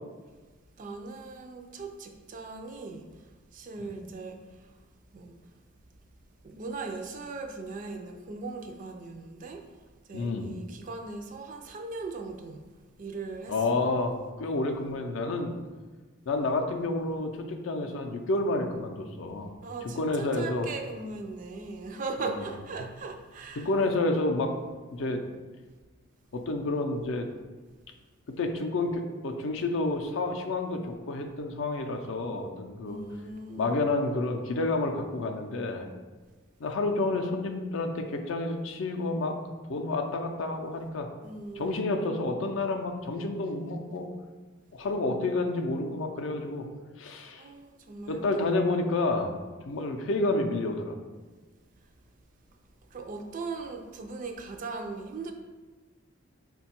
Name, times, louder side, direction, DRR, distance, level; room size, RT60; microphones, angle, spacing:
voice 1, 0.8-3.3 3.5-4.7 5.1-5.4 6.4-9.6 10.1-12.6 13.0-13.9 19.6-23.7 32.8-33.8 41.2-41.9 47.4-48.5 49.0-49.2 52.9-55.3, right 3 dB, 40° right, 4 dB, 0.3 m, -39 dB
voice 2, 10.1-10.5 13.5-15.5 16.3-19.5 19.9-20.7 23.6-24.5 24.9-25.2 26.3-27.3 28.4-33.0 33.6-35.9 36.6-39.4 39.7-41.1 41.6-44.1 44.7-46.7 47.0-47.4 48.1-49.3 49.7-51.0, left 2 dB, 60° left, 4 dB, 0.4 m, -29 dB
4.4 x 2.2 x 4.2 m, 1.3 s
head